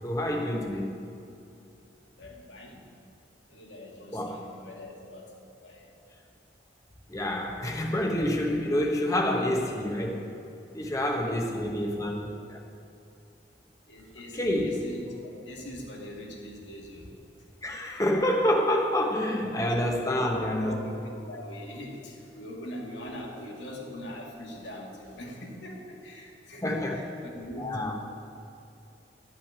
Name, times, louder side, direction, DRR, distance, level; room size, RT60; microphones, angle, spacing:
voice 1, 0.0-0.9 4.1-4.4 7.1-10.3 10.7-12.6 14.3-14.9 17.6-20.7 26.6-27.0 27.6-27.9, left 1 dB, 20° left, 1 dB, 1.0 m, -28 dB
voice 2, 2.1-2.9 3.5-5.9 11.1-11.8 13.9-17.2 19.3-19.7 20.0-27.9, equal, 90° left, -2 dB, 2.3 m, -42 dB
12.5 x 5.8 x 8.6 m, 2.7 s
head